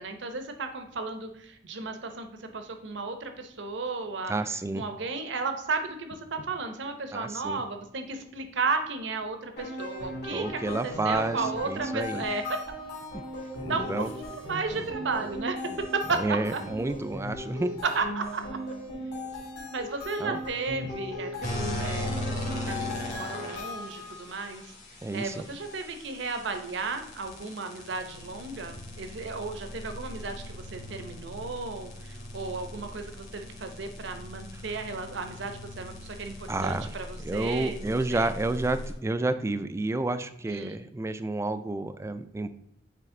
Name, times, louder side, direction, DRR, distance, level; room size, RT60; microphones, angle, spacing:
voice 1, 0.0-4.4 4.7-12.6 13.4-15.6 15.9-16.6 17.8-18.6 19.0-24.7 25.1-38.4 40.5-40.8, right 4 dB, 70° right, 7 dB, 0.8 m, -34 dB
voice 2, 4.3-4.8 7.1-7.6 10.3-11.4 11.7-12.2 13.7-14.1 16.2-17.8 20.2-20.4 25.0-25.3 36.5-36.9 37.2-42.5, right 2 dB, 15° right, 11 dB, 0.3 m, -30 dB
sound 1, 9.6-24.3, left 1 dB, 65° left, 2.2 m, -38 dB
Laughter, 13.5-15.3 15.6-15.8 16.1-16.3 16.5-18.1, left 3 dB, 90° left, 0.7 m, -46 dB
sound 2, 21.4-38.9, left 1 dB, 40° left, 1.6 m, -39 dB
8.4 x 3.3 x 3.7 m, 0.74 s
head